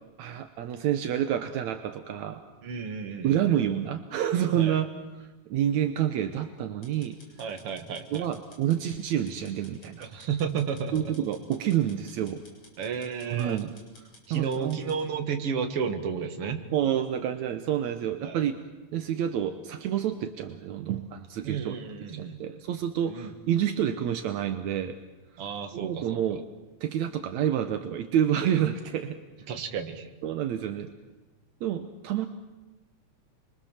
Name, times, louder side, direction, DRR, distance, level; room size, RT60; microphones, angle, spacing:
voice 1, 0.2-2.4 3.2-4.9 5.2-7.2 8.1-10.1 10.9-12.4 13.3-13.7 14.3-14.8 16.7-18.6 18.9-21.7 22.1-25.0 25.7-26.4 26.8-29.2 30.2-30.9 31.6-32.3, right 10 dB, 75° right, 8 dB, 2.3 m, -28 dB
voice 2, 2.6-3.5 4.5-4.8 7.4-8.3 10.0-10.9 12.8-13.6 14.3-16.6 18.2-18.4 21.4-22.4 23.1-23.3 25.4-26.2 29.5-30.1, right 6 dB, 55° right, 6 dB, 2.7 m, -32 dB
sound 1, 6.8-15.0, left 2 dB, 50° left, 8.1 m, -55 dB
30.0 x 23.5 x 7.3 m, 1.2 s
omnidirectional pair, 3.3 m